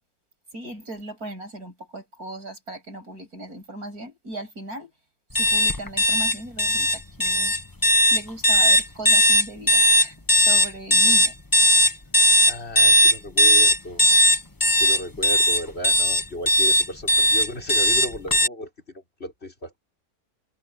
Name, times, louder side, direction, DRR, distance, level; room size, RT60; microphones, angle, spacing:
voice 1, 0.5-4.9 5.3-7.5 8.1-11.4, right 1 dB, 85° right, 8.3 m, -37 dB
sound 1, 5.3-18.5, left 1 dB, 15° left, 1.1 m, -18 dB
voice 2, 12.5-14.0 14.7-19.8, left 1 dB, 45° left, 5.4 m, -35 dB
omnidirectional pair, 1.6 m